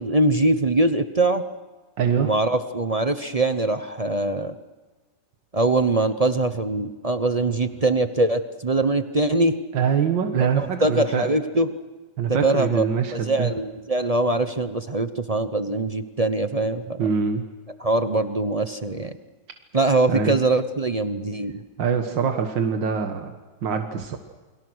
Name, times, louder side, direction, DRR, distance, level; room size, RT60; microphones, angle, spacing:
voice 1, 0.0-1.4 2.2-4.5 5.5-9.6 10.6-11.7 12.4-12.8 13.1-17.1 17.8-19.2 19.7-21.5, right 2 dB, 30° right, 9 dB, 0.6 m, -22 dB
voice 2, 2.0-2.3 9.7-11.3 12.2-13.5 17.0-17.4 20.1-20.3 21.8-23.3 23.6-24.2, right 7 dB, 80° right, 5 dB, 2.2 m, -23 dB
29.5 x 23.5 x 6.3 m, 1.3 s
omnidirectional pair, 2.0 m